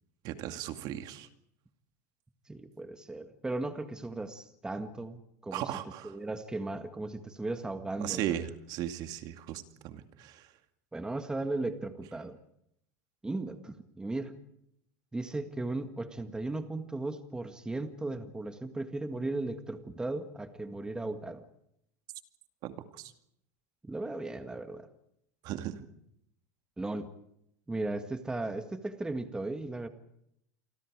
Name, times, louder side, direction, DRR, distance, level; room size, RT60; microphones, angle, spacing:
voice 1, 0.2-1.3 5.5-6.1 8.0-10.5 22.6-23.1 25.4-25.9, right 12 dB, 50° right, 8 dB, 2.3 m, -37 dB
voice 2, 2.5-5.7 6.0-8.4 10.9-12.4 13.2-14.4 15.1-21.4 23.8-24.9 26.8-27.1 27.7-29.9, right 2 dB, 10° right, 8 dB, 1.8 m, -36 dB
28.5 x 24.5 x 5.0 m, 0.74 s
supercardioid pair, 130°, 9 cm